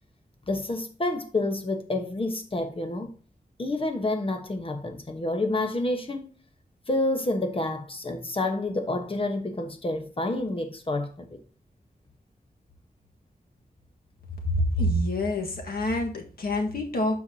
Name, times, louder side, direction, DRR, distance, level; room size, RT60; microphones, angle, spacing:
voice 1, 0.5-3.1 3.6-6.3 6.9-11.4, left 2 dB, 35° left, 1.2 m, -29 dB
voice 2, 14.4-17.2, left 1 dB, 70° left, 1.7 m, -26 dB
12.5 x 4.6 x 2.8 m
wide cardioid pair, 110°, 16 cm